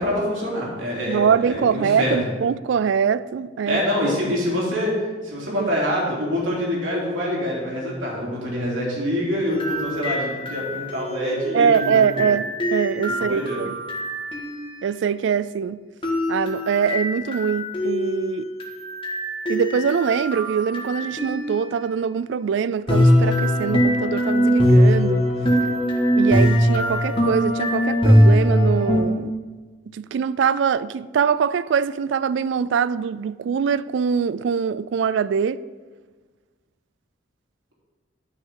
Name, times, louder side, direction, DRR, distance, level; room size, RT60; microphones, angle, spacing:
voice 1, 0.0-2.2 3.7-4.9 5.2-12.3 13.2-13.6, equal, 90° right, 3.2 m, -25 dB
voice 2, 1.1-3.8 5.5-5.7 11.5-13.8 14.8-15.8 16.3-18.5 19.5-25.3 26.2-29.3 29.9-35.6, right 7 dB, 65° right, 0.3 m, -23 dB
sound 1, 9.5-14.8 16.0-21.8 22.9-29.0, equal, 30° left, 1.7 m, -21 dB
12.0 x 6.3 x 3.8 m
head